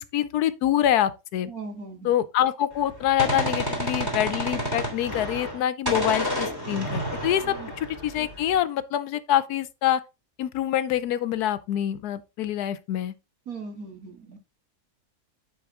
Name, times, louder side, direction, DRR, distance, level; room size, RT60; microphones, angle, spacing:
voice 1, 0.0-1.5 2.0-10.0 10.4-13.1, left 11 dB, 80° left, 1.1 m, -25 dB
voice 2, 1.5-2.1 7.5-7.7 13.5-14.4, right 4 dB, 65° right, 2.3 m, -38 dB
Gunshot gunfire, 2.7-5.6 5.9-8.6, equal, 15° right, 2.4 m, -30 dB
10.0 x 4.2 x 3.6 m
omnidirectional pair, 1.7 m